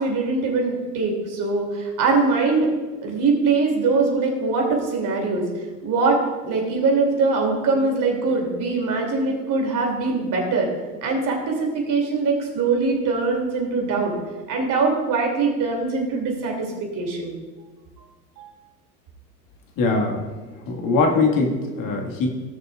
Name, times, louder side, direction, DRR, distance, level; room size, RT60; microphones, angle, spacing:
voice 1, 0.0-2.7 3.0-5.4 5.8-6.2 6.4-10.7 11.0-14.1 14.5-16.5 17.0-17.3 18.4-18.5, right 4 dB, 40° right, 0 dB, 2.9 m, -22 dB
voice 2, 19.8-20.2 20.7-22.3, left 3 dB, 40° left, 1 dB, 1.9 m, -21 dB
17.0 x 6.7 x 2.5 m, 1.3 s
hypercardioid pair, 85°, 48 cm